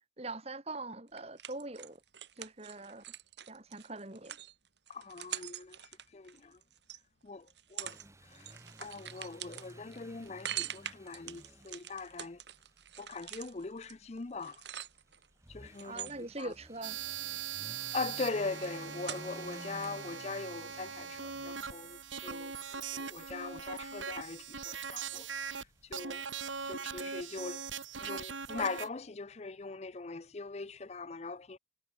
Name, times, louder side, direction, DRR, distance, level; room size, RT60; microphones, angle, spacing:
voice 1, 0.2-2.0 2.4-3.0 3.5-4.4 15.8-17.0, right 2 dB, 35° right, 1.9 m, -42 dB
sound 1, 1.2-7.0 7.5-8.1 8.3-15.3 15.7-17.0 17.3-19.6 19.8-19.9, right 11 dB, 65° right, 2.9 m, -44 dB
voice 2, 4.9-5.8 6.1-6.5 7.2-7.4 7.7-8.0 8.8-12.4 13.0-14.6 15.5-16.1 16.4-16.5 17.9-25.5 25.9-26.2 26.6-27.6 28.0-31.6, left 4 dB, 35° left, 0.5 m, -41 dB
sound 2, 7.8-26.7, right 1 dB, 15° right, 2.3 m, -55 dB
sound 3, 16.8-25.6 25.9-28.9, right 6 dB, 90° right, 5.6 m, -41 dB
head